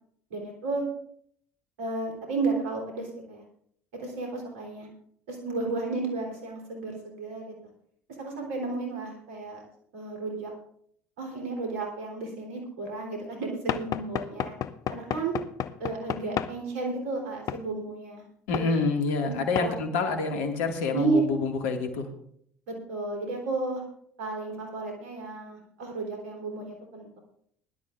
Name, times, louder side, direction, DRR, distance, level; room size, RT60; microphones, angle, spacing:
voice 1, 0.3-0.8 1.8-3.4 4.0-4.9 5.3-7.5 8.2-9.6 9.9-10.5 11.2-14.5 14.9-15.4 15.8-18.3 18.5-18.8 19.6-19.7 20.9-21.2 22.7-23.8 24.2-27.2, right 3 dB, 80° right, 1 dB, 3.6 m, -32 dB
Knock / Wood, 13.7-16.6 17.5-17.7 18.5-18.7 19.6-19.7, left 10 dB, 50° left, 0.6 m, -32 dB
voice 2, 18.5-22.1, left 4 dB, 75° left, 4 dB, 2.1 m, -27 dB
21.0 x 11.5 x 2.5 m, 0.65 s
hypercardioid pair, 60°, 7 cm